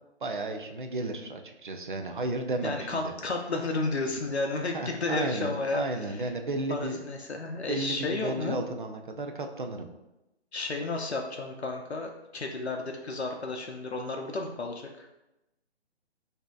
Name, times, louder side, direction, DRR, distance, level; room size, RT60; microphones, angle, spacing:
voice 1, 0.2-3.1 4.7-7.0 7.7-9.9, right 2 dB, 50° right, 5 dB, 0.5 m, -33 dB
voice 2, 2.6-6.3 6.7-8.6 10.5-15.1, left 3 dB, 70° left, 3 dB, 0.6 m, -32 dB
5.9 x 2.7 x 2.3 m, 0.94 s
figure-of-eight pair, 145°, 34 cm